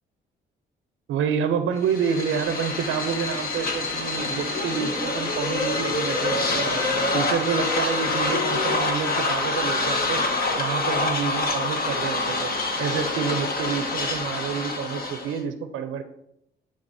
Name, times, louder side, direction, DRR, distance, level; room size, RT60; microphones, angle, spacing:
voice 1, 1.1-10.3 10.6-12.5 12.8-16.0, right 7 dB, 80° right, 9 dB, 0.6 m, -28 dB
sound 1, 1.8-15.4, left 3 dB, 50° left, 1.2 m, -26 dB
11.0 x 3.7 x 2.7 m, 0.77 s
cardioid pair, 90°, 20 cm